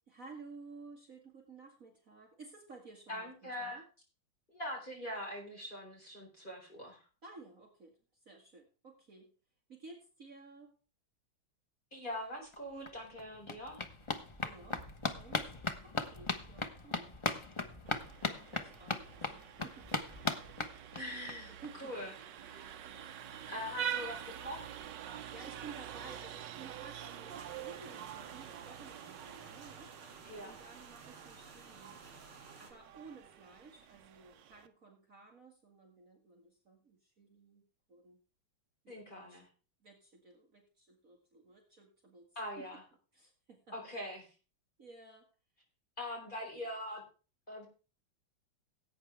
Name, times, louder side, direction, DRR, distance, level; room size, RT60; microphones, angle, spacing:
voice 1, 0.1-3.8 7.2-8.0 8.3-9.3 9.7-10.7 14.4-14.9 15.1-17.1 17.8-20.1 21.5-22.1 22.9-23.2 25.1-32.0 32.6-37.6 37.9-38.2 38.8-39.4 39.8-42.3 42.6-42.8 43.1-43.8 44.8-45.3, right 4 dB, 40° right, 1 dB, 2.2 m, -54 dB
voice 2, 3.1-3.8 4.5-7.0 11.9-13.9 20.9-22.1 22.4-22.8 23.5-24.7 30.2-30.6 38.9-39.5 42.4-42.8 43.7-44.3 46.0-47.0 47.5-47.7, left 1 dB, 20° left, -1 dB, 4.5 m, -43 dB
sound 1, 12.5-12.6 12.9-21.3 21.6-21.7 22.0-22.1 22.3-22.4, left 3 dB, 40° left, 0.4 m, -38 dB
Vehicle horn car horn honking, 17.9-34.7, right 9 dB, 65° right, 1.4 m, -46 dB
sound 2, 27.3-32.7, right 4 dB, 85° right, 3.5 m, -55 dB
17.0 x 8.6 x 3.4 m, 0.34 s
omnidirectional pair, 2.3 m